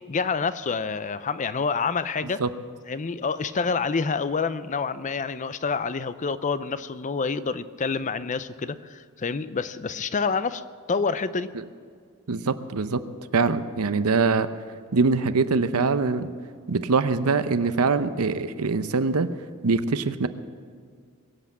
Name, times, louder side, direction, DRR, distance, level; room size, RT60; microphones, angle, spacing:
voice 1, 0.1-2.4 2.9-10.6 10.9-11.5, left 5 dB, 35° left, 14 dB, 0.5 m, -27 dB
voice 2, 12.3-13.0 13.3-14.5 14.9-16.3 16.7-19.3 19.6-20.3, right 4 dB, 80° right, 12 dB, 0.7 m, -23 dB
22.5 x 8.1 x 7.4 m, 2.1 s
head